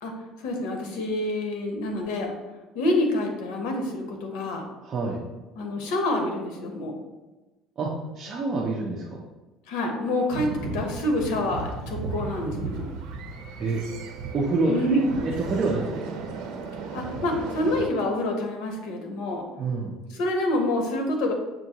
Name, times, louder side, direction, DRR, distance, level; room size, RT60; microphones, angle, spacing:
voice 1, 0.4-2.3 2.7-4.6 5.5-6.9 9.7-12.9 14.7-15.1 16.9-19.4 20.1-21.3, left 1 dB, 80° left, 3 dB, 0.9 m, -27 dB
voice 2, 4.8-5.2 7.8-9.2 13.6-13.8 14.3-14.7 15.2-16.0 19.6-20.0, right 3 dB, 35° right, -3 dB, 0.6 m, -27 dB
sound 1, 10.3-17.9, right 4 dB, 80° right, 0.6 m, -35 dB
6.0 x 2.5 x 2.8 m, 1.1 s
cardioid pair, 150°, 0 cm